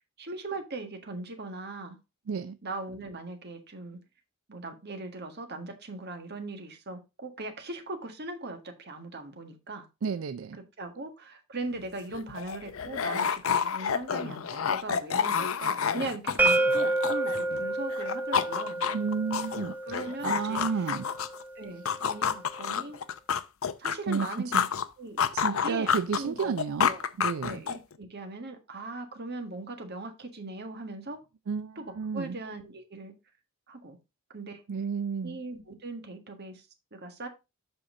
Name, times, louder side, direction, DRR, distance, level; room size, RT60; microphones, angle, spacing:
voice 1, 0.0-2.0 2.6-4.0 4.5-9.9 10.8-18.8 19.8-20.9 21.5-23.0 23.8-24.7 25.0-26.6 26.8-27.1 27.4-31.2 31.7-31.8 32.1-33.1 33.7-34.0 34.3-34.6 35.2-36.7 36.9-37.3, right 2 dB, 50° right, 1.7 m, -39 dB
voice 2, 2.3-2.6 10.0-10.6 18.9-21.1 24.1-24.3 24.5-24.7 25.3-26.9 27.2-27.6 31.5-32.4 34.7-35.4, right 5 dB, 70° right, 0.4 m, -32 dB
sound 1, 11.8-11.9 12.1-17.6 17.9-21.4 21.9-24.9 25.2-27.9, left 7 dB, 70° left, 0.6 m, -29 dB
sound 2, 16.4-22.2, right 2 dB, 10° right, 0.6 m, -30 dB
7.9 x 5.7 x 3.8 m
head